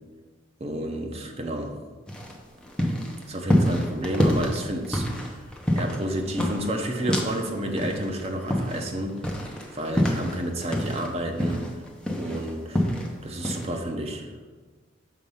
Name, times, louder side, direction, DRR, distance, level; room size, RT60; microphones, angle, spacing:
voice 1, 0.6-1.7 3.3-5.5 5.7-9.5 9.7-11.6 12.2-14.3, right 1 dB, 35° right, 3 dB, 0.8 m, -30 dB
sound 1, 2.1-7.5 7.8-11.1 11.4-13.1 13.4-13.7, equal, 5° left, 0.9 m, -26 dB
6.6 x 4.4 x 5.5 m, 1.4 s
head